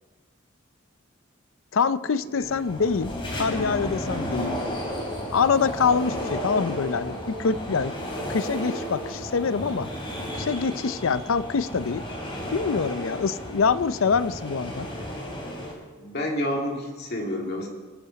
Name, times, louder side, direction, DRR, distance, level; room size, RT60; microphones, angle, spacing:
voice 1, 1.7-4.6 5.3-7.9 8.3-9.9 10.3-12.1 12.5-14.9, left 5 dB, 75° left, 15 dB, 0.5 m, -25 dB
sound 1, 2.4-15.7, equal, 25° left, 2.8 m, -33 dB
voice 2, 16.0-17.7, left 1 dB, 50° left, 0 dB, 2.7 m, -29 dB
23.5 x 9.7 x 4.2 m, 1.4 s
head